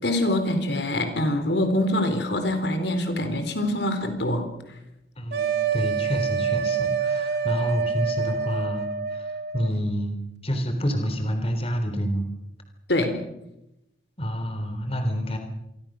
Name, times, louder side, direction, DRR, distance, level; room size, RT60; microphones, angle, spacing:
voice 1, 0.0-4.5 12.9-13.2, left 1 dB, 75° left, 7 dB, 4.1 m, -24 dB
voice 2, 5.2-10.1 10.4-12.3 14.2-15.4, equal, 35° left, 6 dB, 3.6 m, -28 dB
sound 1, 5.3-9.7, right 6 dB, 65° right, 2.2 m, -26 dB
27.5 x 23.0 x 6.4 m, 0.88 s
head